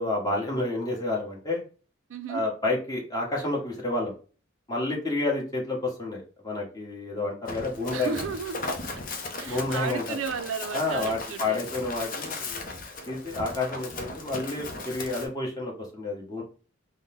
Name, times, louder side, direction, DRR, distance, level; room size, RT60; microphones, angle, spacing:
voice 1, 0.0-1.6 2.3-4.1 4.7-8.2 9.4-10.0 10.7-12.6 13.1-16.4, left 2 dB, 20° left, 1.3 m, -29 dB
voice 2, 2.1-2.5 7.9-8.6 9.4-11.6, right 5 dB, 90° right, 0.5 m, -34 dB
Run, 7.5-15.3, left 3 dB, 45° left, 0.7 m, -37 dB
4.0 x 2.2 x 3.6 m
head